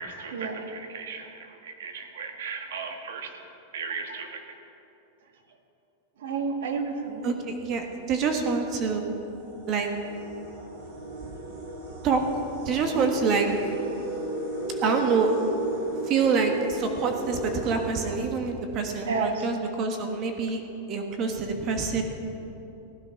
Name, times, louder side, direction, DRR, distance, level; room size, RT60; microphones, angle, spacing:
voice 1, 0.0-3.3 3.7-4.4 6.2-7.3 19.1-19.4, right 4 dB, 80° right, 5 dB, 1.7 m, -33 dB
voice 2, 7.2-9.0 9.7-9.9 12.0-12.2 12.6-13.5 14.8-15.3 16.0-20.6 20.9-22.0, right 5 dB, 30° right, 4 dB, 1.4 m, -26 dB
sound 1, 7.4-7.7 8.5-8.6 9.0-18.8, right 1 dB, 50° right, 4.0 m, -35 dB
16.0 x 11.5 x 5.9 m, 2.9 s
supercardioid pair, 170°, 0 cm